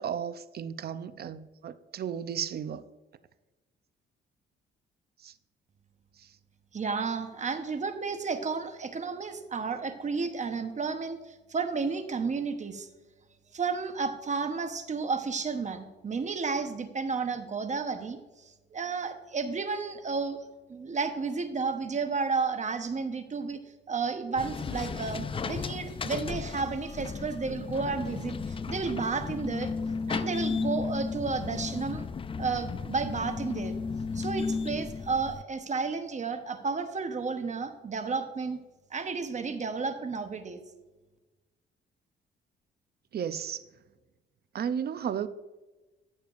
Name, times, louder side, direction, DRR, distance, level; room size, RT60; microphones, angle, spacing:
voice 1, 0.0-2.8 5.2-5.3 6.2-6.3 43.1-43.6 44.5-45.3, right 8 dB, 55° right, 0.6 m, -34 dB
voice 2, 6.7-11.2 11.5-12.9 13.5-18.2 18.7-20.4 20.7-23.6 23.9-29.7 30.1-32.0 32.4-33.7 34.1-38.6 38.9-40.6, right 4 dB, 35° right, 1.1 m, -32 dB
sound 1, 24.4-35.4, left 5 dB, 25° left, 0.4 m, -34 dB
14.0 x 6.8 x 2.6 m
cardioid pair, 90°, 20 cm